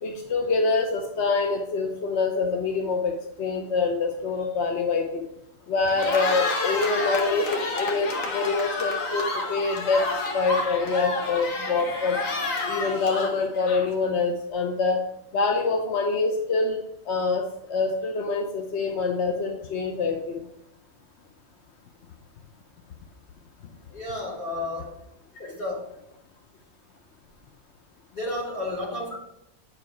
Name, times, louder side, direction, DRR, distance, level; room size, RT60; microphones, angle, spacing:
voice 1, 0.0-5.2 5.7-10.0 10.3-12.2 12.6-15.0 15.3-16.8 17.1-20.4, left 4 dB, 60° left, 3 dB, 1.0 m, -25 dB
Cheering, 5.8-14.1, left 3 dB, 80° left, 1.5 m, -29 dB
voice 2, 23.9-25.0 25.4-25.9 28.1-29.2, left 2 dB, 45° left, -3 dB, 1.8 m, -32 dB
9.2 x 3.3 x 4.7 m, 0.85 s
omnidirectional pair, 1.4 m